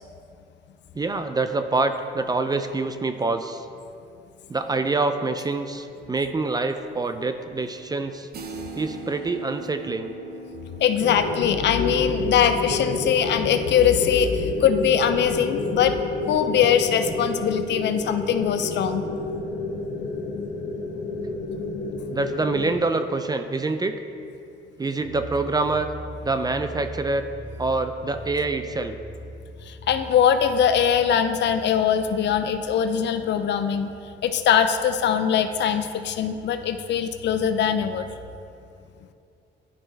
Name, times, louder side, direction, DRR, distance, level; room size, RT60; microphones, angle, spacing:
voice 1, 0.9-3.7 4.5-8.3 8.7-10.1 22.1-24.0 24.8-25.9 26.2-27.2 27.6-29.0, right 3 dB, 20° right, 8 dB, 0.3 m, -26 dB
sound 1, 8.3-18.0, right 2 dB, 50° right, 0.7 m, -43 dB
voice 2, 10.8-16.0 16.3-19.0 29.7-33.9 34.2-38.1, left 8 dB, 60° left, 9 dB, 0.5 m, -22 dB
sound 2, 11.0-22.8, left 3 dB, 85° left, 1.0 m, -30 dB
sound 3, 25.0-38.2, equal, 45° left, 1.7 m, -43 dB
11.0 x 4.3 x 3.2 m, 2.6 s
cardioid pair, 90°, 20 cm